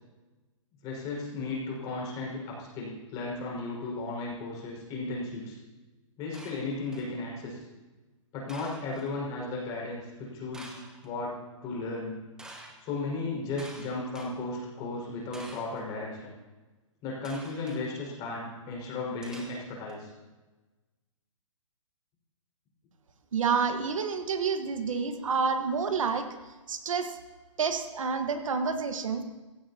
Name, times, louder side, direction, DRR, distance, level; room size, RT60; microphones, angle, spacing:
voice 1, 0.8-5.6 6.2-7.6 8.3-10.7 11.0-11.3 11.6-12.2 12.8-16.3 17.0-20.1, left 3 dB, 25° left, -3 dB, 5.4 m, -35 dB
sound 1, 6.3-7.2 8.5-9.1 10.5-11.1 12.4-12.8 13.6-14.3 15.3-15.8 17.2-17.8 19.2-19.9, right 1 dB, 5° right, 1.3 m, -48 dB
voice 2, 23.3-26.3 26.7-27.1 27.6-29.2, right 5 dB, 75° right, 7 dB, 1.5 m, -29 dB
23.5 x 16.5 x 2.9 m, 1.2 s
hypercardioid pair, 160°, 17 cm